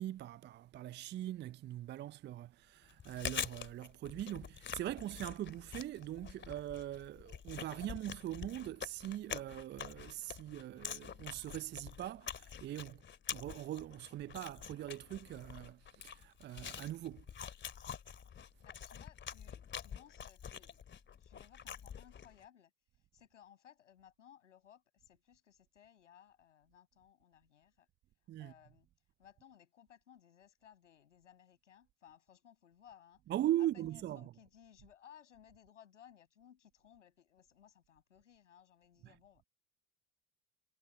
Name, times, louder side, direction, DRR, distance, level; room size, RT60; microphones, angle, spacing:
voice 1, 0.0-13.0 13.3-17.3 28.3-28.5 33.3-34.2 39.0-39.1, right 13 dB, 30° right, 0.6 m, -41 dB
Chewing mastication, 2.9-22.4, left 8 dB, 30° left, 2.7 m, -46 dB
voice 2, 18.6-20.9 21.2-22.7 23.1-27.9 28.4-28.9 29.2-33.2 33.6-39.4, left 9 dB, 80° left, 7.4 m, -61 dB
figure-of-eight pair, 70°, 36 cm